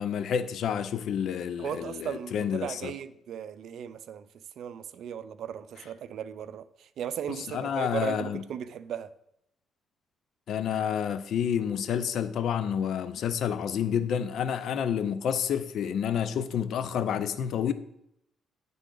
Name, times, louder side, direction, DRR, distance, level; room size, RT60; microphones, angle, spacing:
voice 1, 0.0-2.9 7.3-8.4 10.5-17.7, left 8 dB, 70° left, 0.5 m, -29 dB
voice 2, 1.6-4.3 4.6-9.1, right 9 dB, 70° right, 0.4 m, -37 dB
10.0 x 3.8 x 3.8 m
cardioid pair, 90°, 0 cm